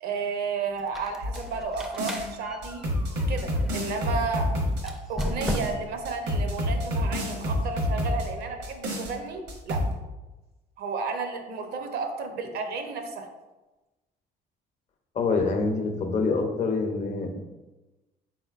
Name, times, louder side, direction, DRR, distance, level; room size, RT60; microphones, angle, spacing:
voice 1, 0.0-2.8 3.3-4.5 4.8-9.8 10.8-13.3, right 4 dB, 70° right, 5 dB, 0.7 m, -32 dB
Squeak, 0.8-4.0 4.8-6.1, equal, ahead, 0.4 m, -35 dB
sound 1, 1.2-2.3 2.6-5.7 6.0-8.3 8.6-9.1 9.5-9.9, left 1 dB, 85° right, 1.2 m, -28 dB
voice 2, 15.1-17.4, left 4 dB, 45° left, 4 dB, 0.7 m, -26 dB
4.3 x 3.9 x 2.4 m, 1.1 s
cardioid pair, 110°, 17 cm